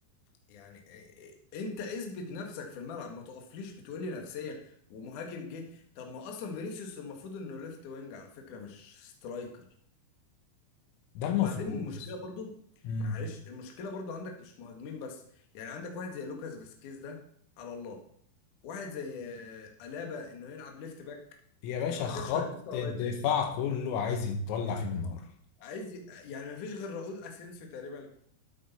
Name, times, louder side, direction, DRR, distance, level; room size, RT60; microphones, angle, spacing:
voice 1, 0.5-9.6 11.4-12.5 13.0-15.2 15.5-17.2 17.6-18.0 18.6-21.2 21.9-23.1 25.6-28.1, left 4 dB, 60° left, 2 dB, 2.3 m, -41 dB
voice 2, 11.2-11.8 12.9-13.2 21.6-25.2, left 7 dB, 90° left, 6 dB, 3.9 m, -31 dB
12.0 x 8.6 x 4.3 m, 0.63 s
omnidirectional pair, 6.0 m